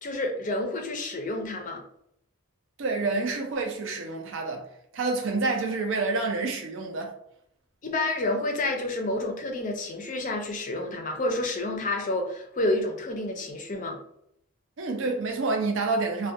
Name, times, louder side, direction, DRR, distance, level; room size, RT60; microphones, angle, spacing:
voice 1, 0.0-1.8 7.8-14.0, left 2 dB, 35° left, 0.4 m, -29 dB
voice 2, 2.8-4.6 4.9-7.2 14.8-16.3, right 3 dB, 60° right, 0.4 m, -28 dB
2.3 x 2.1 x 2.6 m
head